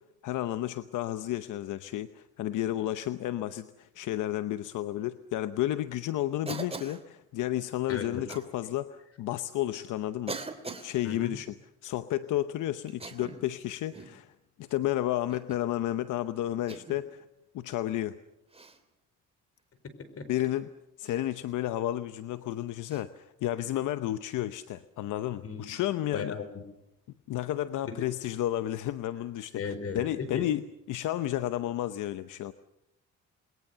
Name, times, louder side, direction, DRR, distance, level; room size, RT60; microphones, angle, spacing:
voice 1, 0.2-10.5 10.8-11.5 11.8-14.3 14.6-17.2 17.5-18.2 20.3-20.7 21.0-26.3 27.3-29.6 29.9-30.6 30.9-32.5, left 13 dB, 85° left, 12 dB, 0.9 m, -32 dB
Cough, 6.5-7.0 8.3-8.5 9.4-9.5 10.3-10.9 12.9-13.5 13.9-14.2 15.3-15.6 16.7-17.0 18.5-18.8 21.0-21.2 22.9-23.0, right 3 dB, 20° right, 3.0 m, -40 dB
voice 2, 7.9-8.4 11.0-11.4 20.1-20.3 25.4-25.7 26.1-26.6 27.8-28.0 29.5-30.5, left 5 dB, 50° left, 11 dB, 4.6 m, -36 dB
29.0 x 21.5 x 6.8 m, 0.85 s
cardioid pair, 90°, 30 cm